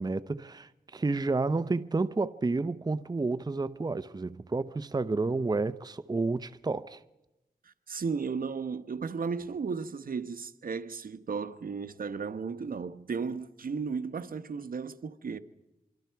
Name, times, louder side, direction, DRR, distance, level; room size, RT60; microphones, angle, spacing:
voice 1, 0.0-7.0, right 3 dB, 25° right, 0.7 m, -30 dB
voice 2, 7.9-15.4, right 5 dB, 65° right, 1.2 m, -34 dB
25.5 x 25.0 x 4.7 m
wide cardioid pair, 75°, 16 cm